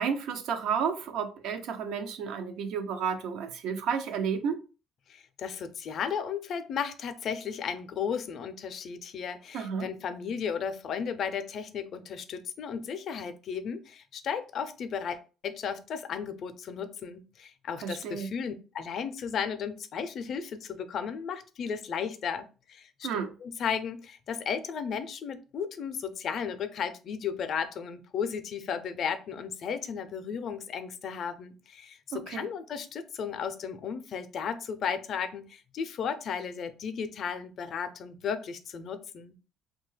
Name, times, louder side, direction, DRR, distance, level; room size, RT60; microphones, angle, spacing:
voice 1, 0.0-4.6 9.5-9.9 17.8-18.3 23.0-23.3 32.1-32.5, right 6 dB, 75° right, 0.4 m, -31 dB
voice 2, 5.1-15.2 15.4-23.1 23.4-39.3, left 7 dB, 55° left, 0.4 m, -34 dB
2.7 x 2.2 x 3.1 m
cardioid pair, 115°, 0 cm